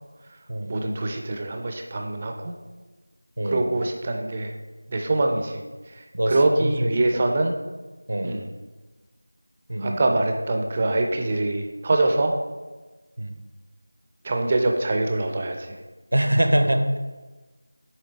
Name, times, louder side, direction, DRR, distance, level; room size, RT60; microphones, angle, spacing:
voice 1, 0.7-2.6 3.4-4.5 4.9-5.6 5.9-7.6 8.2-8.5 9.8-12.3 14.2-15.8, right 2 dB, 25° right, 3 dB, 0.5 m, -24 dB
voice 2, 6.6-6.9 8.1-8.3 9.7-10.0 13.2-13.3 16.1-17.0, right 1 dB, 65° right, 6 dB, 0.7 m, -23 dB
7.5 x 3.3 x 4.0 m, 1.2 s
figure-of-eight pair, 170°, 0 cm